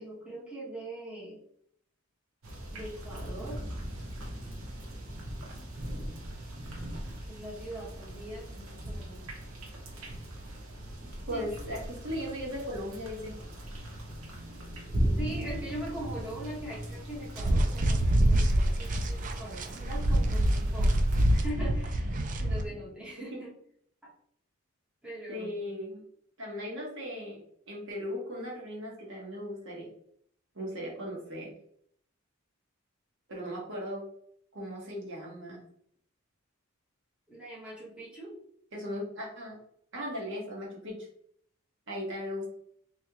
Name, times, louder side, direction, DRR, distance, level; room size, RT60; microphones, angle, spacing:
voice 1, 0.0-1.4 2.7-3.6 7.3-9.2 11.3-11.5 15.2-21.0 21.3-23.5 24.0-24.1 25.0-25.5 37.3-38.4, right 1 dB, 5° right, -8 dB, 1.4 m, -41 dB
sound 1, 2.4-21.5, right 1 dB, 80° right, 1.1 m, -39 dB
voice 2, 11.3-13.3 22.7-22.8 25.3-26.0 26.4-27.4 27.7-29.9 30.5-31.5 33.3-34.0 34.5-35.6 38.7-39.6 39.9-41.1 41.9-42.5, equal, 60° right, -3 dB, 1.3 m, -37 dB
sound 2, 17.4-22.6, right 1 dB, 40° right, 0.4 m, -26 dB
3.5 x 3.2 x 2.9 m, 0.66 s
head